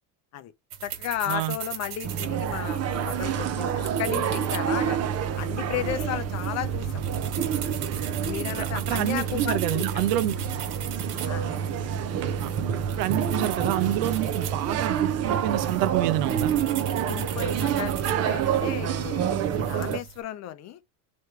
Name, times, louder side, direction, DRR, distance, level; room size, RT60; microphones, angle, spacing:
sound 1, 0.7-20.2, right 8 dB, 55° right, 2.0 m, -39 dB
voice 1, 0.8-5.0 5.4-7.0 8.2-10.0 11.2-11.5 17.1-20.8, left 12 dB, 35° left, 0.6 m, -34 dB
sound 2, 2.0-20.0, right 8 dB, 35° right, 0.7 m, -28 dB
voice 2, 8.6-10.4 12.4-12.5 13.0-16.5, right 13 dB, 90° right, 0.9 m, -28 dB
3.2 x 3.2 x 4.3 m
supercardioid pair, 140°, 47 cm